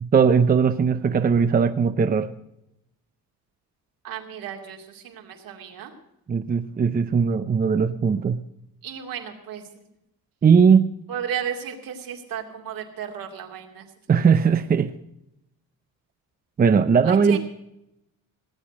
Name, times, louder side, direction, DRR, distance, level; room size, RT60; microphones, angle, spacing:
voice 1, 0.0-2.3 6.3-8.4 10.4-10.9 14.1-14.9 16.6-17.4, right 6 dB, 25° right, 10 dB, 0.6 m, -19 dB
voice 2, 4.0-5.9 8.8-9.6 11.1-13.9 17.0-17.4, right 8 dB, 70° right, 3 dB, 2.6 m, -34 dB
18.5 x 8.4 x 6.1 m, 0.83 s
cardioid pair, 115°, 36 cm